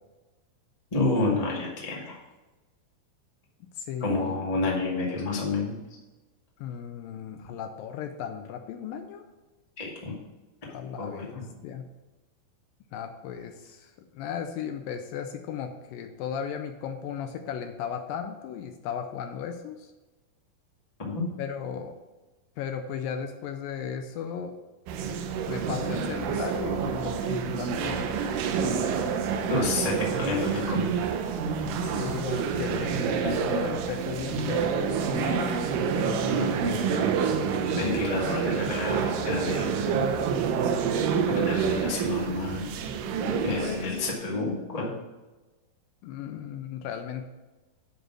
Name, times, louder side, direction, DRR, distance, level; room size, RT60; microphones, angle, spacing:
voice 1, 0.9-2.2 4.0-5.7 9.8-10.1 11.0-11.4 21.0-21.2 29.5-30.8 34.3-34.4 37.7-40.1 41.3-42.6 43.4-44.9, left 3 dB, 35° left, -3 dB, 0.6 m, -29 dB
voice 2, 3.8-4.4 6.6-9.2 10.7-11.9 12.9-19.9 21.4-22.0 22.6-24.6 25.5-28.2 31.8-37.1 43.2-44.1 44.3-44.5 46.0-47.3, left 8 dB, 80° left, 7 dB, 2.2 m, -36 dB
sound 1, 24.9-44.1, right 6 dB, 75° right, 2.2 m, -28 dB
10.0 x 4.1 x 6.1 m, 1.1 s
omnidirectional pair, 4.4 m